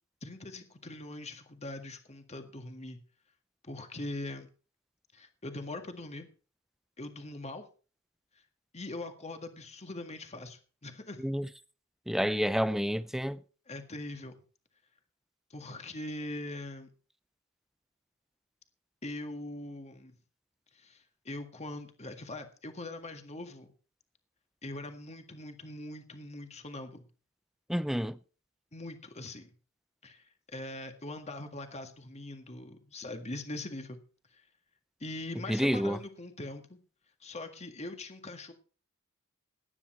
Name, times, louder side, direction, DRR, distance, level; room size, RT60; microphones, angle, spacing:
voice 1, 0.2-3.0 3.6-4.5 5.1-6.3 7.0-7.6 8.7-11.3 13.7-14.3 15.5-16.9 19.0-20.1 20.7-23.7 24.6-27.1 28.7-29.5 30.0-34.0 34.3-34.5 35.0-36.8 37.2-38.5, left 2 dB, 30° left, 1.8 m, -42 dB
voice 2, 12.1-13.4 27.7-28.2 35.5-36.0, equal, ahead, 0.6 m, -29 dB
17.0 x 10.0 x 4.4 m
head